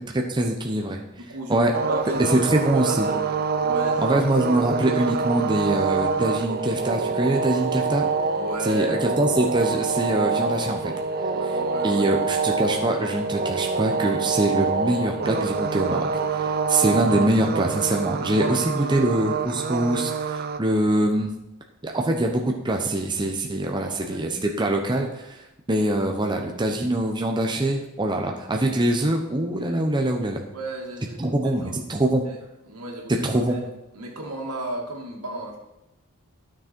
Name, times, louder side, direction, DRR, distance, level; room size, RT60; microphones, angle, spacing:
voice 1, 0.1-1.0 1.5-1.7 2.2-3.1 4.0-8.1 8.6-10.9 11.8-16.1 16.3-21.3 21.8-25.1 25.7-30.4 31.2-32.2 33.2-33.6, right 1 dB, 20° right, 2 dB, 0.9 m, -23 dB
voice 2, 1.2-3.2 3.6-4.2 8.4-9.2 11.2-12.2 18.3-19.1 20.7-20.8 23.7-24.2 25.0-25.1 30.5-31.8 32.3-32.4 32.6-33.6 33.9-35.6, right 1 dB, 85° right, 0 dB, 2.3 m, -34 dB
sound 1, 1.7-20.6, right 5 dB, 45° right, 0.6 m, -26 dB
12.5 x 6.4 x 4.4 m, 0.93 s
head